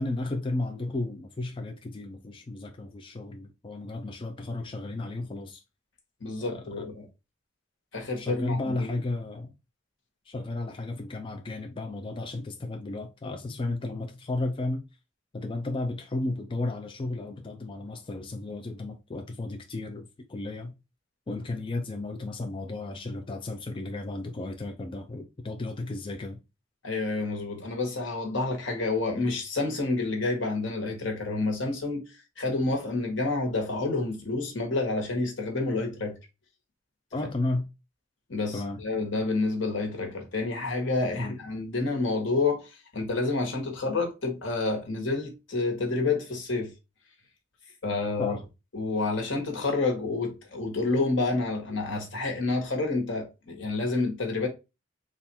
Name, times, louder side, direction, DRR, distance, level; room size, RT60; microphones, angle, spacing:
voice 1, 0.0-5.6 6.4-6.9 8.2-9.5 10.3-14.8 15.3-20.8 21.3-26.4 37.1-37.7 38.5-38.8 41.2-41.4 48.2-48.4, left 2 dB, 25° left, 0.4 m, -33 dB
voice 2, 6.2-7.0 7.9-8.9 26.8-32.0 32.4-36.2 38.3-46.7 47.8-48.3 48.7-54.5, left 3 dB, 80° left, 1.2 m, -29 dB
3.4 x 2.5 x 4.1 m
head